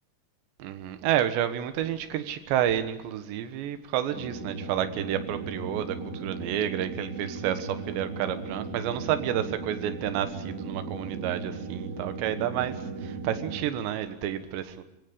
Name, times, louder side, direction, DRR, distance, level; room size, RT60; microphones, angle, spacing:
voice 1, 0.6-6.0 6.2-12.7 13.0-14.8, right 11 dB, 80° right, 10 dB, 3.6 m, -30 dB
sound 1, 4.1-13.6, right 4 dB, 60° right, 5.1 m, -37 dB
26.0 x 16.5 x 9.9 m, 0.82 s
omnidirectional pair, 5.0 m